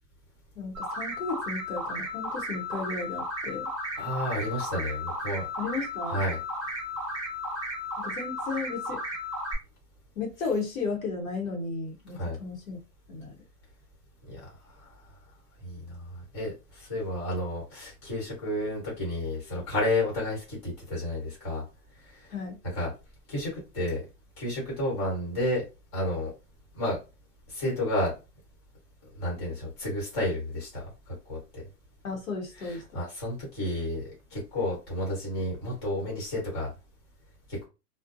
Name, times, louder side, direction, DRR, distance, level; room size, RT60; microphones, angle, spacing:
voice 1, 0.6-3.7 5.6-6.2 8.0-9.0 10.2-12.8 13.1-13.4 22.3-22.6 32.0-32.8, left 4 dB, 55° left, 0.8 m, -34 dB
sound 1, 0.7-9.5, left 1 dB, 20° right, 1.0 m, -34 dB
voice 2, 4.0-5.5 6.1-6.4 12.1-12.4 14.3-15.0 15.6-21.6 22.0-22.3 22.7-22.9 23.3-24.0 24.4-25.6 25.9-26.3 26.7-27.0 27.5-28.1 29.0-31.6 32.6-36.7 37.5-37.6, left 1 dB, 15° left, 0.9 m, -31 dB
2.5 x 2.0 x 2.5 m
hypercardioid pair, 175°, 49 cm